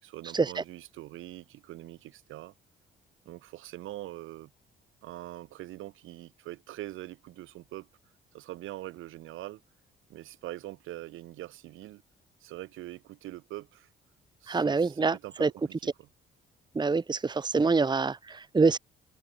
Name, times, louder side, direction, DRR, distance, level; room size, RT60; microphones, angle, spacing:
voice 1, 0.0-2.5 3.2-4.5 5.0-7.9 8.3-9.6 10.1-12.0 12.4-13.9 14.4-16.1, right 16 dB, 90° right, 5.0 m, -43 dB
voice 2, 14.5-15.5 16.7-18.8, right 4 dB, 20° right, 1.1 m, -26 dB
cardioid pair, 90°, 20 cm